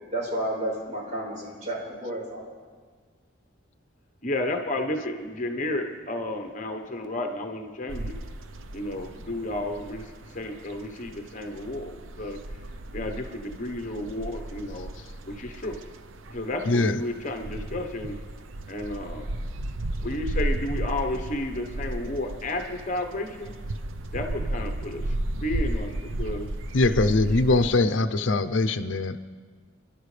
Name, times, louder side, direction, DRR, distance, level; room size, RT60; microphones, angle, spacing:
voice 1, 0.1-2.5, right 1 dB, 40° right, -4 dB, 4.6 m, -31 dB
voice 2, 4.2-8.2 8.7-12.4 12.9-14.9 15.2-15.8 16.3-18.2 18.7-19.3 20.0-23.5 24.1-25.1 25.4-26.5, left 1 dB, 40° left, 5 dB, 1.0 m, -32 dB
sound 1, 7.9-27.7, right 1 dB, 85° right, 0.7 m, -34 dB
voice 3, 16.7-17.0 26.7-29.2, left 2 dB, 75° left, 10 dB, 0.6 m, -22 dB
28.0 x 11.5 x 3.3 m, 1.5 s
head